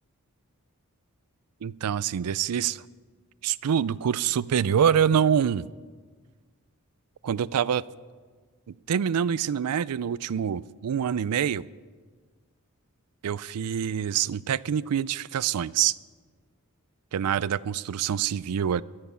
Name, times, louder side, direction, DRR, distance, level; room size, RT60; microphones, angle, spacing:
voice 1, 1.6-2.8 3.4-5.7 7.2-7.8 8.7-11.7 13.2-16.0 17.1-18.8, right 8 dB, 90° right, 20 dB, 0.4 m, -25 dB
15.5 x 11.5 x 5.6 m, 1.5 s
head